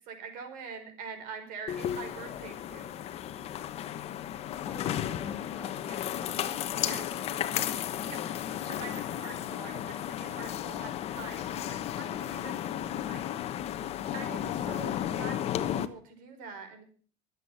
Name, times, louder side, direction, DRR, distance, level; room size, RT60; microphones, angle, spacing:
voice 1, 0.1-2.9 5.9-6.0 6.8-7.0 8.1-8.2 8.7-13.4 14.1-16.8, right 5 dB, 60° right, 6 dB, 4.9 m, -44 dB
sound 1, 1.7-15.9, left 11 dB, 40° left, 1.1 m, -34 dB
voice 2, 4.3-8.2, equal, 5° right, 5 dB, 2.0 m, -50 dB
23.5 x 8.3 x 5.7 m, 0.43 s
cardioid pair, 145°, 16 cm